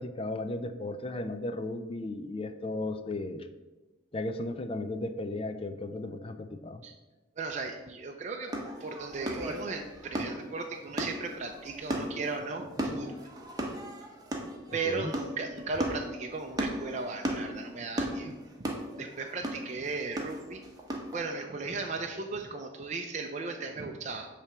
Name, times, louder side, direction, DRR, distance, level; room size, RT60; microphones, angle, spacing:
voice 1, 0.0-3.5 4.1-6.8 14.8-15.1, left 2 dB, 30° left, 9 dB, 0.4 m, -35 dB
voice 2, 7.4-8.5 8.8-13.3 14.7-18.3 18.6-18.7 19.0-20.6 21.1-24.3, right 4 dB, 35° right, 2 dB, 0.5 m, -36 dB
sound 1, 8.5-21.2, right 1 dB, 20° right, 1.0 m, -36 dB
8.6 x 3.4 x 6.0 m, 1.1 s
head